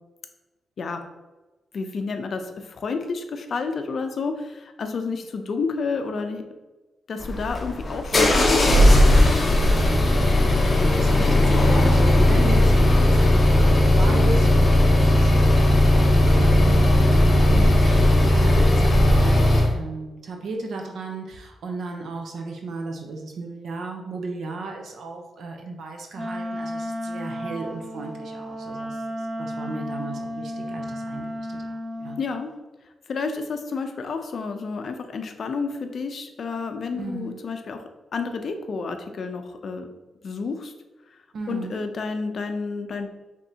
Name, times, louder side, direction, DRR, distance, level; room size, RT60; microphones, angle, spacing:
voice 1, 1.7-6.5 7.1-9.5 32.2-32.5 33.1-37.8 38.1-39.9 40.2-40.7 41.1-41.2 41.5-43.1, left 4 dB, 55° left, 7 dB, 0.5 m, -30 dB
sound 1, 7.2-19.7, left 1 dB, 35° left, 0.9 m, -17 dB
voice 2, 10.2-15.9 16.2-29.0 29.4-31.3 31.6-32.2 36.9-37.4 41.3-41.8, right 3 dB, 75° right, 2 dB, 0.8 m, -35 dB
Wind instrument woodwind instrument, 26.1-32.2, equal, 15° right, 0.7 m, -33 dB
5.2 x 3.5 x 2.8 m, 1.1 s
cardioid pair, 95°, 0 cm